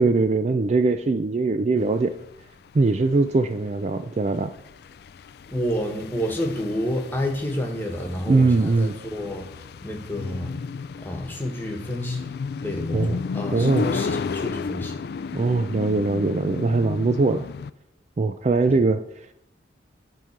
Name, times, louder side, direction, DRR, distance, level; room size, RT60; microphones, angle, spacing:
voice 1, 0.0-2.2 2.7-4.5 8.3-9.0 12.9-13.2 13.5-13.9 15.3-17.5 18.2-19.0, right 3 dB, 35° right, 10 dB, 0.4 m, -21 dB
sound 1, 1.9-17.7, left 5 dB, 55° left, 0.3 m, -33 dB
voice 2, 5.5-10.6 11.0-12.3 12.6-15.0 18.7-18.8, equal, 10° left, 1 dB, 1.4 m, -29 dB
10.5 x 3.7 x 6.6 m, 0.77 s
head